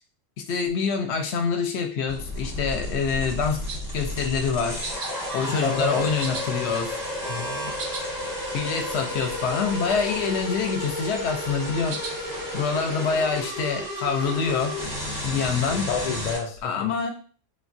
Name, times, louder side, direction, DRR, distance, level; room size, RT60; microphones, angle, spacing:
voice 1, 0.5-3.6 3.9-4.9 5.3-6.9 8.5-12.0 12.5-14.8 15.2-15.9 16.6-17.1, left 5 dB, 65° left, 4 dB, 0.8 m, -26 dB
sound 1, 2.1-16.4, left 1 dB, 20° left, 0.8 m, -32 dB
sound 2, 3.7-4.0 4.8-5.1 5.4-5.9 6.2-7.2 7.5-8.0 8.4-8.5 8.7-8.8 9.1-9.5 9.8-10.3 10.7-11.3 11.9-12.2 12.9-13.1, right 4 dB, 65° right, 0.5 m, -38 dB
voice 2, 5.6-6.1 6.7-6.8 7.3-7.7 15.7-16.9, left 5 dB, 85° left, 3 dB, 0.3 m, -30 dB
3.4 x 2.2 x 2.5 m, 0.39 s
omnidirectional pair, 1.3 m